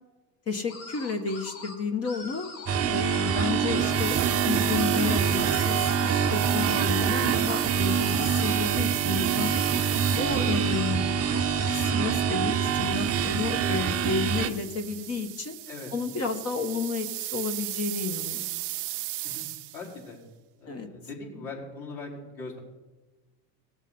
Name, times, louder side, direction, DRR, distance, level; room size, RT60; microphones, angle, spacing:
voice 1, 0.5-2.5 2.9-4.2 4.5-9.5 10.2-11.1 11.7-15.5 15.9-18.6 20.7-20.9, left 5 dB, 35° left, 6 dB, 1.2 m, -31 dB
sound 1, 0.7-1.7 2.0-2.8 3.0-6.8 7.2-8.6 9.4-12.3, left 3 dB, 70° left, 2.9 m, -42 dB
sound 2, 2.7-14.5, right 7 dB, 35° right, 0.7 m, -25 dB
sound 3, 3.8-10.8 12.7-19.9, right 17 dB, 85° right, 0.8 m, -36 dB
voice 2, 9.6-9.9 15.7-15.9 19.2-19.5 19.7-20.2 20.6-22.6, left 3 dB, 50° left, -5 dB, 4.9 m, -40 dB
18.0 x 7.1 x 4.3 m, 1.2 s
supercardioid pair, 100°, 42 cm